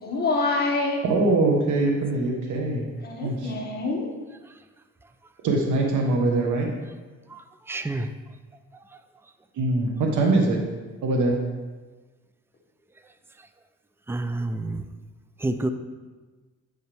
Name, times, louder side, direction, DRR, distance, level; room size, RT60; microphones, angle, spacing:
voice 1, 0.0-1.0 3.0-4.1, left 3 dB, 30° left, -2 dB, 1.9 m, -26 dB
voice 2, 1.0-2.8 3.2-3.5 5.4-6.7 9.6-10.6 11.0-11.4, right 2 dB, 75° right, 1 dB, 1.3 m, -22 dB
voice 3, 7.3-8.1 13.4-13.5 14.1-14.8 15.4-15.7, right 2 dB, 10° right, 9 dB, 0.5 m, -29 dB
9.3 x 5.6 x 3.5 m, 1.3 s
cardioid pair, 90°, 30 cm